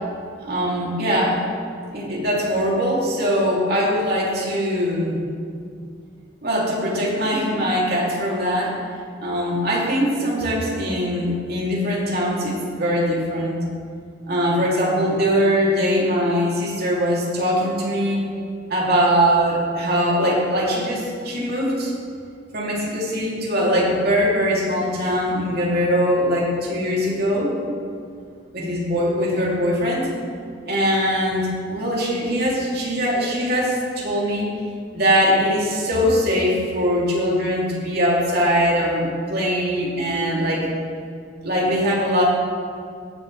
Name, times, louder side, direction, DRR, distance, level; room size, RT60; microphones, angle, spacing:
voice 1, 0.4-1.4 1.9-5.2 6.4-8.7 9.2-13.6 14.3-18.2 18.7-21.9 22.5-27.6 28.5-30.1 30.7-34.5 34.9-40.7 41.4-42.2, equal, 60° right, -5 dB, 2.6 m, -21 dB
16.5 x 7.2 x 3.2 m, 2.3 s
head